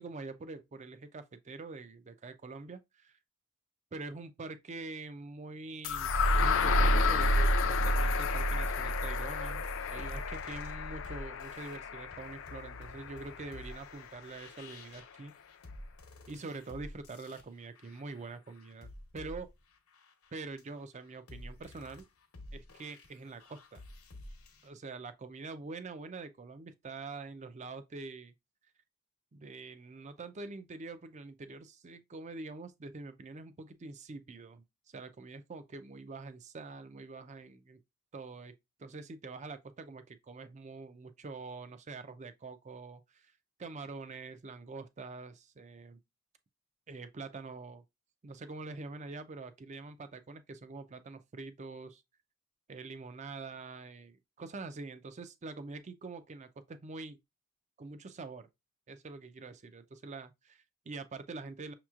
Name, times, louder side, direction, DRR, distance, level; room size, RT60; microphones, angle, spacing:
voice 1, 0.0-3.2 3.9-15.4 16.3-19.5 20.3-22.0 22.5-23.8 24.6-28.3 29.3-34.6 34.9-37.8 38.1-38.5 38.8-43.3 43.6-46.0 46.9-47.8 48.2-51.9 52.7-57.2 57.8-58.5 58.9-61.7, right 3 dB, 30° right, 0.4 m, -45 dB
sound 1, 5.8-13.8, left 2 dB, 60° left, 0.4 m, -30 dB
sound 2, 9.5-24.7, left 1 dB, 75° left, 1.0 m, -51 dB
6.1 x 3.0 x 2.4 m
head